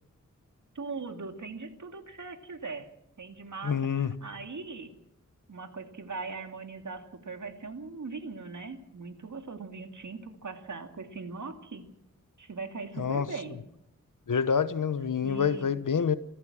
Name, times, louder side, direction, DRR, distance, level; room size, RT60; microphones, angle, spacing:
voice 1, 0.7-2.9 3.2-4.9 5.5-11.9 12.4-13.6 15.2-15.7, right 4 dB, 70° right, 2.5 m, -40 dB
voice 2, 3.6-4.1 13.0-13.3 14.3-16.2, left 7 dB, 80° left, 1.2 m, -27 dB
27.5 x 15.0 x 7.5 m
wide cardioid pair, 90°, 31 cm